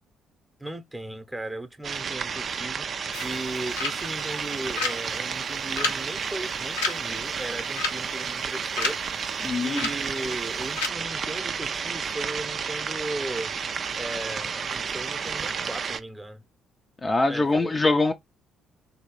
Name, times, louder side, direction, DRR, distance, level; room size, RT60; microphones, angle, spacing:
voice 1, 0.6-9.0 9.2-13.5 14.0-16.4 17.3-17.7, right 2 dB, 10° right, 0.8 m, -36 dB
sound 1, 1.8-16.0, right 6 dB, 50° right, 0.4 m, -31 dB
sound 2, 3.1-10.9, left 4 dB, 85° left, 0.8 m, -34 dB
voice 2, 9.4-9.8 17.0-18.1, left 2 dB, 30° left, 0.5 m, -23 dB
3.2 x 2.7 x 3.0 m
hypercardioid pair, 50°, 0 cm